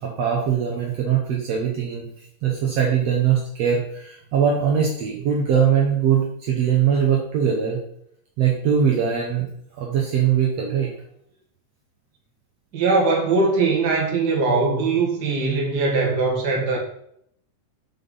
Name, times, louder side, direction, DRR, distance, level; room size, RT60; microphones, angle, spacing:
voice 1, 0.0-7.8 8.4-9.5 9.8-10.9, right 8 dB, 65° right, -1 dB, 1.9 m, -21 dB
voice 2, 12.7-16.8, right 3 dB, 40° right, -1 dB, 1.9 m, -21 dB
5.8 x 5.4 x 5.5 m, 0.70 s
omnidirectional pair, 3.5 m